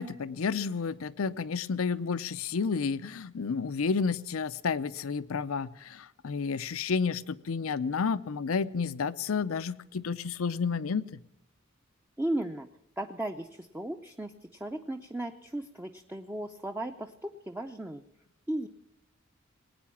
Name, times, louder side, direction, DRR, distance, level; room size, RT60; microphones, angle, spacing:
voice 1, 0.0-11.2, left 5 dB, 85° left, 0.6 m, -31 dB
voice 2, 12.2-12.7 13.0-18.0 18.5-18.7, right 1 dB, 10° right, 0.5 m, -36 dB
19.5 x 9.2 x 7.2 m
head